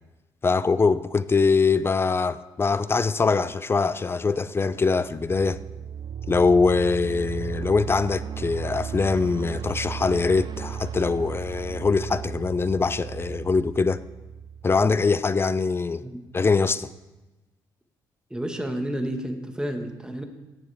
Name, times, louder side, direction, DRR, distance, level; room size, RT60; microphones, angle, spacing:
voice 1, 0.4-5.6 6.3-14.0 14.6-16.0 16.3-16.9, left 4 dB, 25° left, 0.5 m, -23 dB
sound 1, 4.8-15.5, right 8 dB, 55° right, 0.5 m, -35 dB
voice 2, 18.3-20.2, right 1 dB, 10° right, 1.6 m, -30 dB
17.0 x 7.2 x 3.5 m
supercardioid pair, 70°, 9 cm